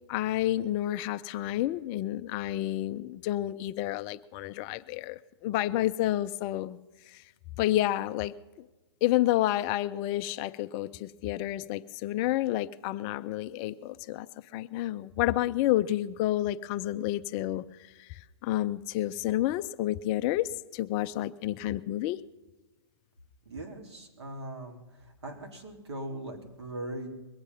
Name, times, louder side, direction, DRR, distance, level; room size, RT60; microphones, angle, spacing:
voice 1, 0.1-6.8 7.1-7.2 7.6-8.3 9.0-14.3 14.5-22.2, left 14 dB, 25° left, 13 dB, 0.4 m, -30 dB
voice 2, 23.5-27.1, right 1 dB, 85° right, 3 dB, 3.6 m, -40 dB
22.0 x 8.8 x 5.5 m, 1.1 s
hypercardioid pair, 150°, 14 cm